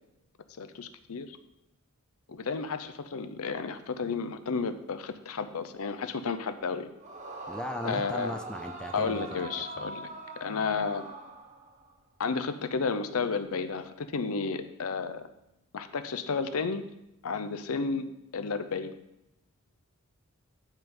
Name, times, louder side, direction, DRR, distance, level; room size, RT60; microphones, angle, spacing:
voice 1, 0.6-1.4 2.3-6.9 7.8-8.4 8.9-10.1 10.4-11.1 12.2-15.2 15.7-16.9 17.2-18.1 18.3-18.9, left 4 dB, 75° left, 10 dB, 0.6 m, -32 dB
Yell / Screaming, 7.0-11.9, right 2 dB, 35° right, 0.8 m, -41 dB
voice 2, 7.5-9.2 9.6-9.9, left 1 dB, 5° left, 5 dB, 0.3 m, -38 dB
10.5 x 3.8 x 5.3 m, 0.85 s
head